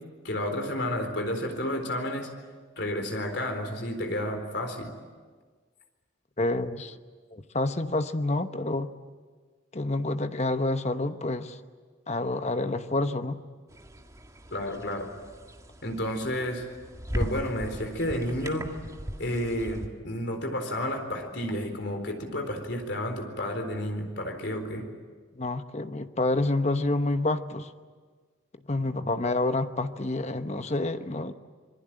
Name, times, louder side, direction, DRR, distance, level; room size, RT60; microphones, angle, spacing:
voice 1, 0.2-2.3 2.8-4.9 14.5-15.1 15.8-16.7 17.1-18.7 19.2-24.9 29.0-29.1, left 1 dB, 60° left, 5 dB, 4.2 m, -31 dB
voice 2, 6.4-6.9 7.3-8.9 9.7-11.6 12.1-13.4 25.3-27.7 28.7-31.3, left 2 dB, 35° left, 9 dB, 1.0 m, -28 dB
sound 1, 13.7-19.9, equal, 15° right, 1.8 m, -38 dB
26.5 x 21.5 x 9.1 m, 1.5 s
head